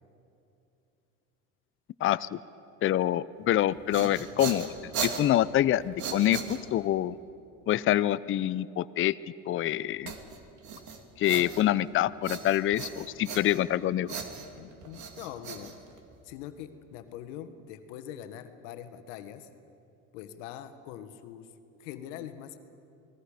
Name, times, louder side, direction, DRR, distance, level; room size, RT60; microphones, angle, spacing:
voice 1, 2.0-2.4 2.8-7.2 7.7-9.2 9.5-10.1 11.2-14.2, left 12 dB, 35° left, 16 dB, 0.5 m, -26 dB
sound 1, 3.6-7.0 10.1-11.9 12.2-13.8 14.1-16.3, right 6 dB, 50° right, 2.6 m, -38 dB
voice 2, 14.6-15.7 16.2-19.5 20.1-21.5 21.8-22.6, left 10 dB, 80° left, 10 dB, 1.5 m, -43 dB
29.0 x 20.0 x 5.0 m, 2.7 s
supercardioid pair, 100°, 36 cm